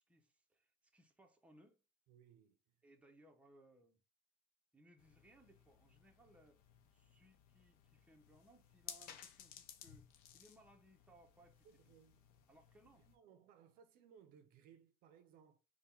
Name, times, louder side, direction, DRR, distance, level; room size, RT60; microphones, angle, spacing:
voice 1, 0.1-1.8 2.8-4.0 4.7-6.6 6.9-11.7 12.5-13.0, right 1 dB, 10° right, 0.8 m, -67 dB
voice 2, 2.1-2.6 11.6-12.2 13.0-15.6, right 8 dB, 60° right, 0.6 m, -64 dB
sound 1, 5.0-13.2, left 9 dB, 65° left, 0.7 m, -59 dB
3.4 x 2.2 x 4.4 m
supercardioid pair, 95°, 17 cm